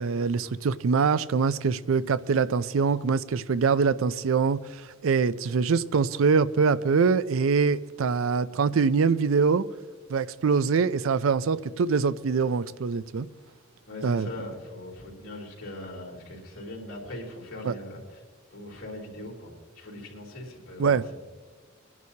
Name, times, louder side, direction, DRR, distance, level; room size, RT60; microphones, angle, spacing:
voice 1, 0.0-9.6 10.1-13.3 14.0-14.3 17.6-17.7 20.8-21.0, right 5 dB, 90° right, 0.4 m, -24 dB
voice 2, 13.9-18.2 18.5-21.2, left 1 dB, 90° left, 3.4 m, -40 dB
23.5 x 11.0 x 2.8 m
head